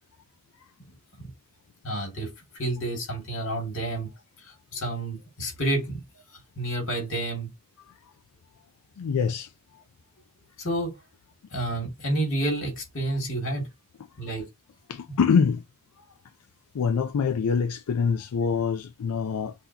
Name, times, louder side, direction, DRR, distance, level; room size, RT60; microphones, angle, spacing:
voice 1, 1.8-2.3 2.5-4.1 4.4-6.0 6.6-7.5 10.6-10.9 11.5-13.7 14.2-14.4, right 1 dB, 60° left, 2.4 m, -29 dB
voice 2, 9.0-9.5 14.9-15.6 16.7-19.5, left 6 dB, 90° left, 0.4 m, -25 dB
6.0 x 2.8 x 2.8 m
head